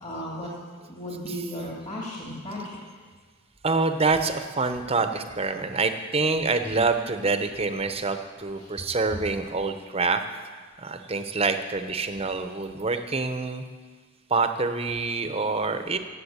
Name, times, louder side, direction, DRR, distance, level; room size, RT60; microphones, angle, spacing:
voice 1, 0.0-0.5 0.9-2.8 8.6-8.7, equal, 35° left, -4 dB, 2.5 m, -35 dB
voice 2, 3.6-10.2 10.8-13.6 14.3-16.0, right 3 dB, 30° right, 8 dB, 0.8 m, -26 dB
16.5 x 7.4 x 8.7 m, 1.5 s
head